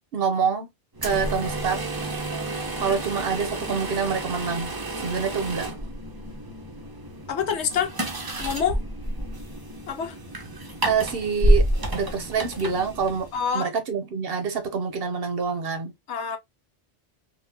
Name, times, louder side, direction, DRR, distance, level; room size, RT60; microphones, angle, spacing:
voice 1, 0.1-0.7 1.0-1.8 2.8-4.7 5.0-5.7 10.8-11.7 11.9-15.9, right 6 dB, 60° right, 0.9 m, -26 dB
sound 1, 0.9-13.5, right 1 dB, 25° right, 0.5 m, -29 dB
voice 2, 7.3-7.9 8.4-8.8 9.9-10.2 13.3-13.7 16.1-16.4, left 7 dB, 75° left, 1.0 m, -26 dB
3.8 x 2.3 x 2.7 m
omnidirectional pair, 1.2 m